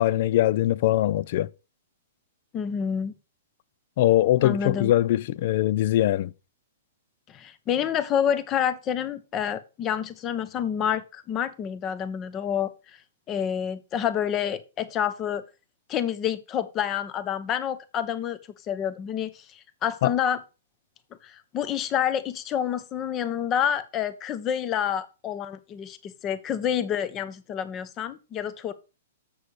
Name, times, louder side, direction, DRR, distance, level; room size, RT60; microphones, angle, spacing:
voice 1, 0.0-1.5 4.0-6.3 20.0-20.1, left 14 dB, 50° left, 0.4 m, -22 dB
voice 2, 2.5-3.2 4.4-4.9 7.3-12.7 13.3-15.4 15.9-18.4 18.7-20.4 21.2-28.7, left 9 dB, 25° left, 0.8 m, -28 dB
7.0 x 6.4 x 4.8 m
hypercardioid pair, 145°, 0 cm